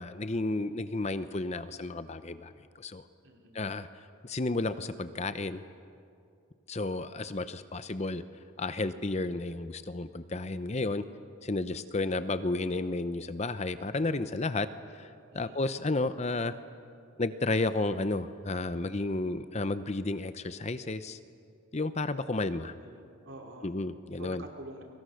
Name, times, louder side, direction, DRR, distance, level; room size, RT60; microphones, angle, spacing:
voice 1, 0.0-2.5 2.8-3.0 3.5-3.9 4.2-5.6 6.7-8.2 8.6-11.0 11.4-14.7 14.9-16.5 17.2-21.2 21.7-22.7 23.6-24.4, left 2 dB, 30° left, 12 dB, 0.7 m, -32 dB
voice 2, 3.2-3.6 15.3-15.6 22.7-23.0 23.2-23.8 24.2-24.8, right 1 dB, 60° right, 2 dB, 3.1 m, -47 dB
30.0 x 24.0 x 6.4 m, 2.4 s
head